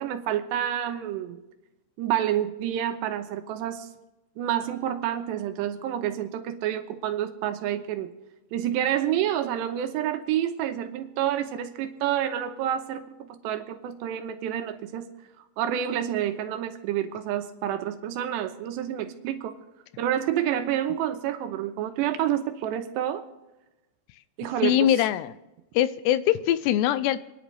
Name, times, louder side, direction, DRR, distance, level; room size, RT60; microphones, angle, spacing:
voice 1, 0.0-1.4 2.0-3.9 4.4-8.1 8.5-15.1 15.6-19.6 20.0-23.3 24.4-24.9, right 11 dB, 80° right, 6 dB, 3.2 m, -28 dB
voice 2, 24.6-25.3 25.8-27.2, left 12 dB, 80° left, 14 dB, 2.7 m, -22 dB
28.5 x 10.5 x 3.4 m, 1.0 s
omnidirectional pair, 5.0 m